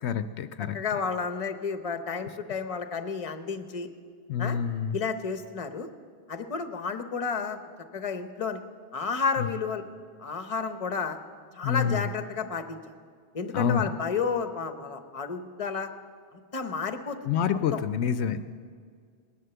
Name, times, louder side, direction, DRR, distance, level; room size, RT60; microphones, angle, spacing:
voice 1, 0.0-0.8 4.3-5.0 11.6-12.0 13.5-13.9 17.3-18.4, left 7 dB, 80° left, 12 dB, 0.9 m, -27 dB
voice 2, 0.7-3.9 4.4-4.6 4.9-5.9 6.3-7.6 7.9-8.6 8.9-9.8 10.2-11.2 11.5-12.8 13.3-15.9 16.3-17.2 17.7-17.8, left 5 dB, 35° left, 9 dB, 0.9 m, -31 dB
18.5 x 11.0 x 6.9 m, 2.1 s
omnidirectional pair, 1.1 m